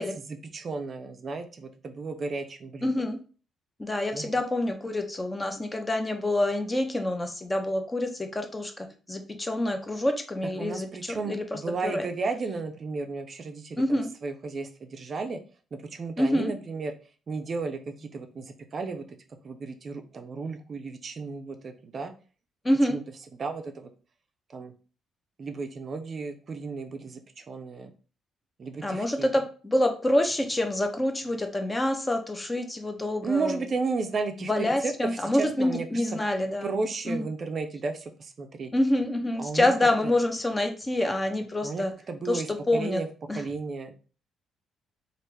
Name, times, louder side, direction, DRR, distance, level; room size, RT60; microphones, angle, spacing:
voice 1, 0.3-2.9 4.1-4.4 10.6-15.4 15.7-16.9 17.3-19.1 19.4-22.1 22.9-23.0 23.4-23.9 24.5-24.7 25.4-27.9 28.6-29.3 33.2-36.2 36.6-38.7 39.4-39.7 40.0-40.1 41.6-43.1 43.4-43.9, right 4 dB, 45° right, 6 dB, 0.4 m, -34 dB
voice 2, 2.8-3.2 3.8-12.1 13.8-14.1 16.2-16.5 22.6-23.0 28.8-33.6 34.4-36.7 37.1-37.2 38.7-41.9 42.3-43.0 43.3-43.4, left 1 dB, 15° left, 5 dB, 0.5 m, -27 dB
3.3 x 2.4 x 3.1 m, 0.38 s
cardioid pair, 105°, 0 cm